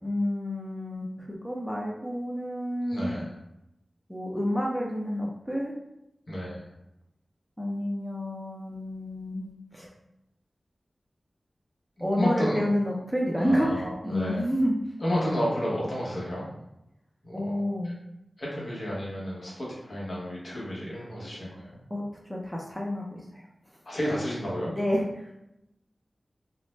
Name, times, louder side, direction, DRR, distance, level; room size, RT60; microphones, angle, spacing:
voice 1, 0.0-3.1 4.1-5.8 7.6-9.9 12.0-14.7 17.3-17.9 21.9-22.0 22.3-23.5 24.8-25.3, equal, ahead, -2 dB, 0.5 m, -29 dB
voice 2, 2.9-3.3 6.3-6.6 12.0-12.6 13.4-14.4 15.0-16.5 17.2-17.5 18.4-21.8 23.8-24.7, equal, 60° left, -5 dB, 0.9 m, -31 dB
2.5 x 2.0 x 3.1 m, 0.86 s
wide cardioid pair, 65°, 0 cm